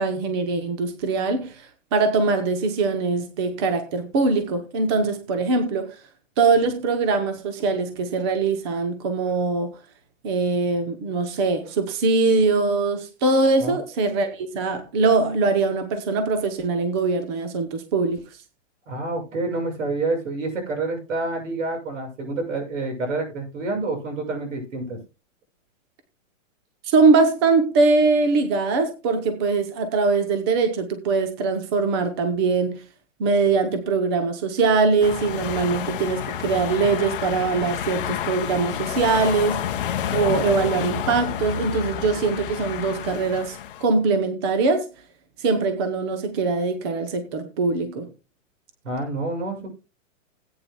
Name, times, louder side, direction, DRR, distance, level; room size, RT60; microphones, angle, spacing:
voice 1, 0.0-6.0 6.4-9.8 10.2-18.2 26.8-32.8 33.2-39.7 40.1-44.9 45.4-48.1, right 4 dB, 20° right, 0.7 m, -22 dB
voice 2, 18.9-25.0 48.8-49.7, right 2 dB, 75° right, 6.8 m, -28 dB
sound 1, 35.0-43.8, left 9 dB, 45° left, 0.9 m, -29 dB
17.5 x 8.9 x 2.2 m
hypercardioid pair, 175°, 39 cm